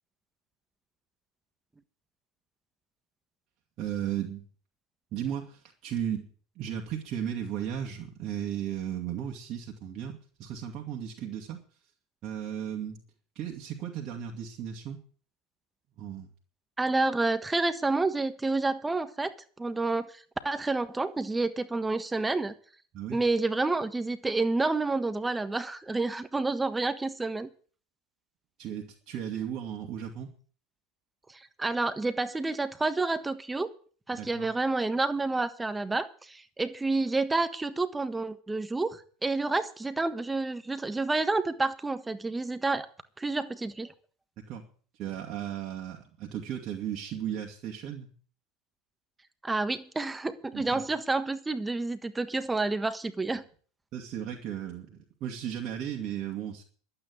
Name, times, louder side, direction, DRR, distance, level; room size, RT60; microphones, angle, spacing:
voice 1, 3.8-4.4 5.1-6.3 6.6-11.6 12.2-13.0 13.3-15.0 16.0-16.3 22.9-23.2 28.6-30.3 34.1-34.5 44.5-44.7 44.9-48.1 50.5-50.9 53.9-56.6, right 9 dB, 50° right, 1 dB, 2.5 m, -35 dB
voice 2, 16.8-19.3 19.6-22.5 23.1-27.5 31.3-33.7 34.1-42.9 43.2-43.9 49.4-53.4, right 3 dB, 15° right, 11 dB, 1.4 m, -29 dB
12.0 x 9.0 x 8.8 m, 0.42 s
hypercardioid pair, 85°, 0 cm